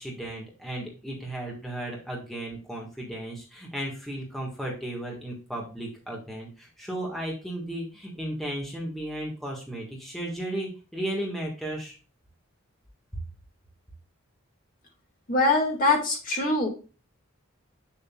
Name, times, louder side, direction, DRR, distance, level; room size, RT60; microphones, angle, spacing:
voice 1, 0.0-12.0, right 1 dB, ahead, -3 dB, 1.6 m, -35 dB
voice 2, 15.3-16.7, left 2 dB, 40° left, 1 dB, 1.9 m, -23 dB
7.8 x 7.2 x 2.3 m, 0.33 s
head